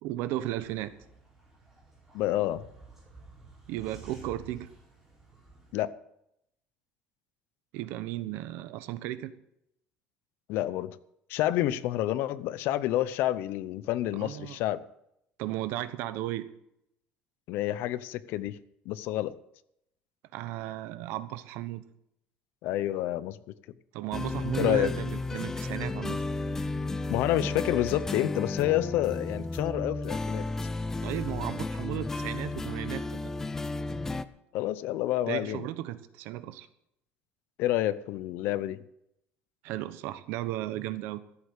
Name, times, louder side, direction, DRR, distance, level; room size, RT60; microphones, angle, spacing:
voice 1, 0.0-0.9 3.7-4.7 7.7-9.3 14.1-14.6 15.4-16.5 20.3-21.8 23.9-26.2 31.0-33.3 35.3-36.7 39.6-41.2, right 14 dB, 70° right, 14 dB, 1.0 m, -35 dB
sound 1, 0.6-5.7, right 4 dB, 5° right, 4.8 m, -52 dB
voice 2, 2.1-2.6 5.7-5.9 10.5-11.0 11.3-14.8 17.5-18.6 18.9-19.3 22.6-23.4 24.6-24.9 27.1-30.4 34.5-35.6 37.6-38.8, left 14 dB, 60° left, 17 dB, 0.7 m, -28 dB
sound 2, 24.1-34.2, left 3 dB, 10° left, 0.5 m, -33 dB
14.5 x 8.2 x 8.2 m, 0.79 s
cardioid pair, 170°, 4 cm